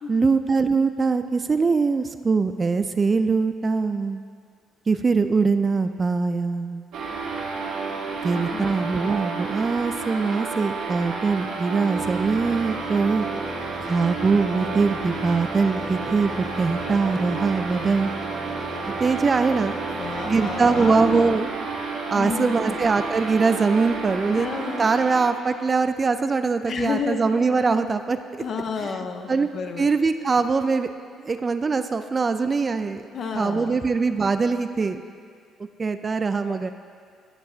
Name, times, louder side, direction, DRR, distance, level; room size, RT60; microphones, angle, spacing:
voice 1, 0.1-4.2 4.9-6.8 8.2-13.3 13.8-18.1 19.0-19.8 20.2-21.5 22.1-24.5 24.8-28.2 29.3-29.5 29.8-30.9 31.2-33.0 33.3-35.0 35.8-36.7, right 4 dB, 35° right, 9 dB, 0.3 m, -22 dB
sound 1, 6.9-25.3, right 4 dB, 75° right, 0.9 m, -31 dB
voice 2, 8.3-8.8 19.8-21.4 22.1-22.9 24.3-24.9 26.7-27.2 28.4-29.9 33.1-33.8 36.5-36.7, left 5 dB, 55° left, 5 dB, 0.6 m, -31 dB
sound 2, 12.0-21.3, equal, 15° left, 1.0 m, -38 dB
11.0 x 6.0 x 2.4 m, 2.2 s
hypercardioid pair, 60°, 0 cm